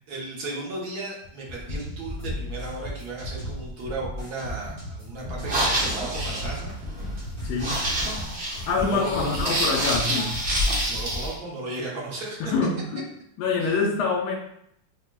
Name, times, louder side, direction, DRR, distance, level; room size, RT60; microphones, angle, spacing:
voice 1, 0.1-6.7 8.5-9.5 10.6-12.5 13.6-13.8, right 2 dB, 60° right, -3 dB, 1.3 m, -35 dB
sound 1, 1.2-11.4, left 2 dB, 50° left, 0.8 m, -36 dB
sound 2, 1.8-3.8 4.2-8.2, right 1 dB, 80° right, 2.3 m, -38 dB
sound 3, 5.3-11.3, right 1 dB, 40° right, 1.1 m, -27 dB
voice 2, 7.4-7.9 8.6-10.4 12.4-13.0 13.4-14.4, left 4 dB, 70° left, -1 dB, 1.1 m, -25 dB
5.7 x 2.1 x 2.2 m, 0.72 s
omnidirectional pair, 2.0 m